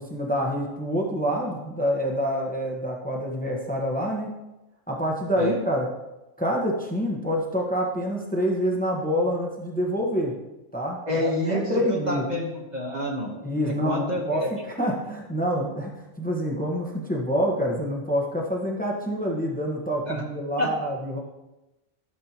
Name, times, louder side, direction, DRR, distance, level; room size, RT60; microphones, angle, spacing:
voice 1, 0.0-4.3 4.9-5.9 6.4-10.3 10.7-12.2 13.4-21.2, equal, 5° left, -1 dB, 1.1 m, -27 dB
voice 2, 11.0-11.6 11.9-13.3 13.6-14.5 20.1-20.2 20.6-20.7, equal, 35° right, -1 dB, 1.2 m, -28 dB
12.5 x 6.6 x 2.9 m, 0.98 s
omnidirectional pair, 1.3 m